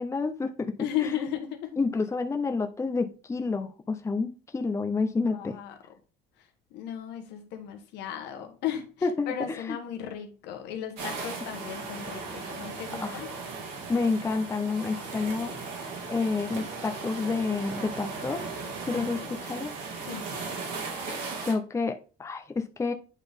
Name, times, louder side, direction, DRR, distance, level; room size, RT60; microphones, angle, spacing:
voice 1, 0.0-0.8 1.8-5.6 9.0-9.8 13.0-13.2 13.9-15.5 16.1-18.4 18.9-19.7 21.4-22.9, left 4 dB, 15° left, 6 dB, 0.6 m, -29 dB
voice 2, 0.8-1.8 5.3-5.8 6.7-13.3 18.9-19.3 20.0-20.4, left 9 dB, 85° left, 5 dB, 1.3 m, -35 dB
sound 1, 11.0-21.5, right 4 dB, 90° right, 2.2 m, -37 dB
8.9 x 4.0 x 3.5 m, 0.36 s
cardioid pair, 110°, 17 cm